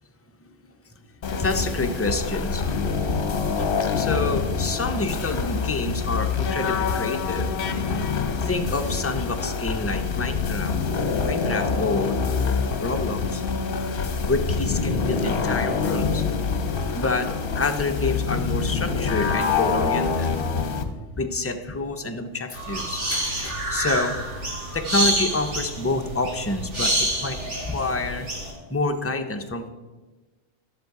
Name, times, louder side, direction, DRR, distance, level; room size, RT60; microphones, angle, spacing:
sound 1, 1.2-20.8, left 5 dB, 55° left, 0.9 m, -25 dB
voice 1, 1.4-2.6 3.6-3.7 4.0-7.5 8.4-10.7 11.2-12.2 12.8-13.4 14.2-16.2 16.9-17.3 17.5-20.3 20.8-24.2 24.7-28.3 28.7-29.7, left 2 dB, 20° left, 5 dB, 0.4 m, -28 dB
sound 2, 22.5-28.5, right 1 dB, 85° right, 2.5 m, -27 dB
10.5 x 6.9 x 4.7 m, 1.2 s
omnidirectional pair, 1.2 m